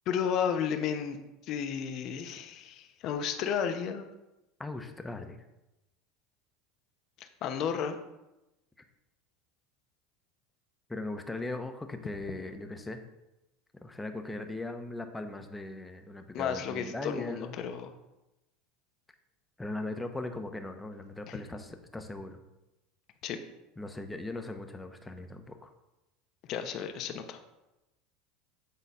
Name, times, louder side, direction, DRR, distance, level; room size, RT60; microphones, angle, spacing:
voice 1, 0.1-1.2 1.4-4.1 7.2-8.0 16.3-17.9 21.3-21.4 23.2-23.4 26.5-27.4, left 7 dB, 50° left, 7 dB, 0.9 m, -33 dB
voice 2, 4.6-5.4 10.9-13.0 13.8-17.6 19.6-22.4 23.8-25.7, left 2 dB, 10° left, 6 dB, 0.9 m, -39 dB
8.5 x 3.9 x 5.6 m, 0.97 s
supercardioid pair, 115°, 0 cm